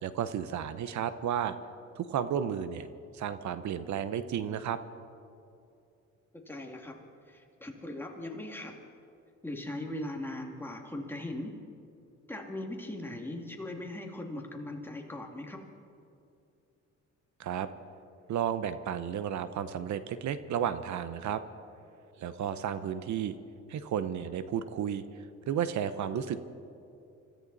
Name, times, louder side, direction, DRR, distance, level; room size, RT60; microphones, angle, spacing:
voice 1, 0.0-1.5 2.0-2.9 3.1-4.8 17.4-17.7 18.3-21.4 22.2-23.4 23.7-26.4, right 9 dB, 70° right, 12 dB, 0.9 m, -33 dB
voice 2, 6.5-7.0 7.3-8.8 9.4-11.5 12.3-15.6, left 1 dB, 5° left, 1 dB, 2.4 m, -39 dB
25.5 x 14.0 x 4.1 m, 2.6 s
cardioid pair, 90°, 30 cm